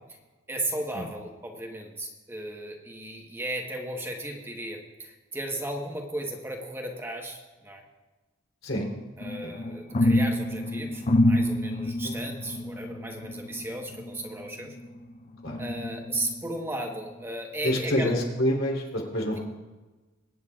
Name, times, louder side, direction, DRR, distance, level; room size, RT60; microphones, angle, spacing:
voice 1, 0.5-7.8 9.2-14.8 15.6-18.1, right 1 dB, 10° right, 1 dB, 1.2 m, -35 dB
voice 2, 8.6-8.9 9.4-9.5 12.0-12.1 15.4-15.6 17.6-19.4, left 1 dB, 85° left, -1 dB, 3.4 m, -27 dB
sound 1, 9.2-15.0 15.5-16.6 17.1-17.2, left 1 dB, 35° left, 0.5 m, -27 dB
23.0 x 9.4 x 2.4 m, 1.2 s
head